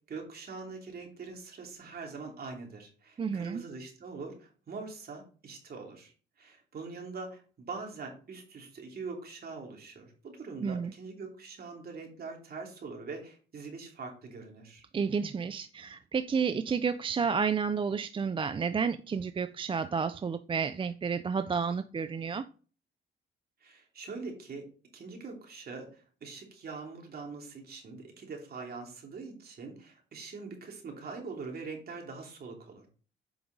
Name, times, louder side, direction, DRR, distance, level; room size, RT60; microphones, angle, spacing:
voice 1, 0.1-6.1 6.4-14.8 23.6-24.7 24.9-32.9, right 4 dB, 50° right, 2.8 m, -43 dB
voice 2, 3.2-3.6 10.6-10.9 14.9-22.4, right 6 dB, 25° right, 0.4 m, -31 dB
7.8 x 5.2 x 3.9 m
cardioid pair, 90°, 20 cm